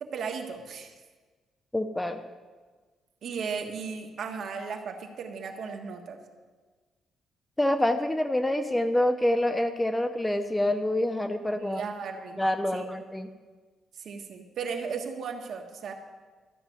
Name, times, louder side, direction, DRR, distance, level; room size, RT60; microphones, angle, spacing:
voice 1, 0.0-0.9 3.2-6.2 11.6-12.4 12.7-12.8 13.9-15.9, right 5 dB, 55° right, 4 dB, 1.5 m, -36 dB
voice 2, 1.7-2.2 7.6-11.8 12.4-13.3, left 1 dB, 5° left, 8 dB, 0.6 m, -26 dB
13.0 x 6.0 x 9.2 m, 1.4 s
cardioid pair, 145°, 0 cm